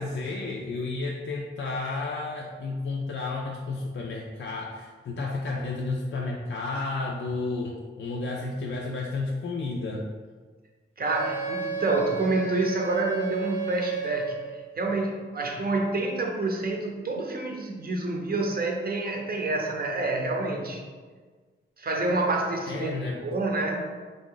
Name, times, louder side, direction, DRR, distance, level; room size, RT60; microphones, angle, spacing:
voice 1, 0.0-10.0 17.1-17.2 17.5-17.6 22.7-23.3, left 3 dB, 65° left, -2 dB, 0.4 m, -32 dB
voice 2, 11.0-20.8 21.8-22.9 23.2-23.9, right 2 dB, 45° right, 1 dB, 0.7 m, -28 dB
Wind instrument woodwind instrument, 11.0-14.6, right 6 dB, 90° right, 1.0 m, -32 dB
4.0 x 2.5 x 3.7 m, 1.5 s
wide cardioid pair, 105°, 21 cm